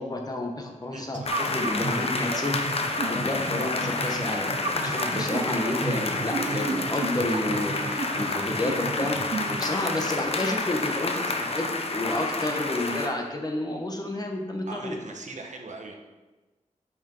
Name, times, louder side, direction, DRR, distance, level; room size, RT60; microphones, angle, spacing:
voice 1, 0.0-9.2 9.5-15.0, left 1 dB, 30° left, 2 dB, 1.1 m, -30 dB
voice 2, 0.9-1.3 14.7-15.9, right 3 dB, 70° right, 2 dB, 1.1 m, -40 dB
sound 1, 1.1-9.6, right 4 dB, 40° right, 0.5 m, -34 dB
sound 2, 1.3-13.1, left 3 dB, 50° left, 0.8 m, -29 dB
6.1 x 6.0 x 5.3 m, 1.2 s
wide cardioid pair, 110°, 13 cm